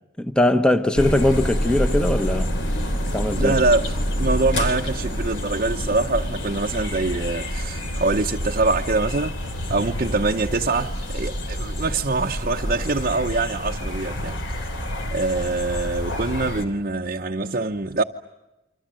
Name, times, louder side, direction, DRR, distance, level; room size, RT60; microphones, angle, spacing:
voice 1, 0.2-2.5 3.1-3.6, left 1 dB, 5° left, 1.1 m, -20 dB
sound 1, 1.0-16.6, equal, 65° left, 3.5 m, -27 dB
voice 2, 3.3-9.4 9.7-14.8 15.1-18.0, right 3 dB, 45° right, 0.9 m, -24 dB
28.5 x 25.5 x 7.7 m
head